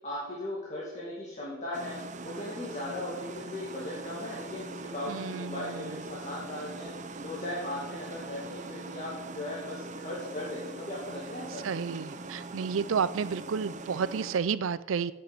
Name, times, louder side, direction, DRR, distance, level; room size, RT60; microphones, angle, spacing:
voice 1, 0.0-2.0 2.2-6.9 7.2-11.6, left 1 dB, 35° left, -6 dB, 2.3 m, -38 dB
sound 1, 1.7-14.4, right 3 dB, 35° right, 0.7 m, -42 dB
voice 2, 5.1-5.9 11.6-15.1, right 6 dB, 80° right, 17 dB, 0.5 m, -31 dB
8.5 x 7.7 x 8.2 m, 1.1 s
head